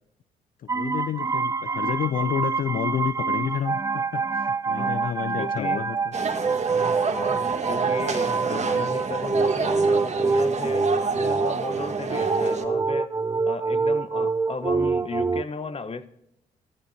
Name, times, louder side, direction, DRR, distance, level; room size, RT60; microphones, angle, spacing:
voice 1, 0.6-6.1 10.6-10.8, left 9 dB, 55° left, 15 dB, 0.5 m, -30 dB
sound 1, 0.7-15.4, right 4 dB, 20° right, 0.4 m, -26 dB
voice 2, 5.4-5.8 7.1-7.4 7.7-10.9 11.1-13.1 13.5-16.1, left 4 dB, 35° left, 13 dB, 1.1 m, -35 dB
sound 2, 6.1-12.6, right 5 dB, 40° right, 1.7 m, -28 dB
18.5 x 14.5 x 2.8 m, 0.81 s
supercardioid pair, 55°, 17 cm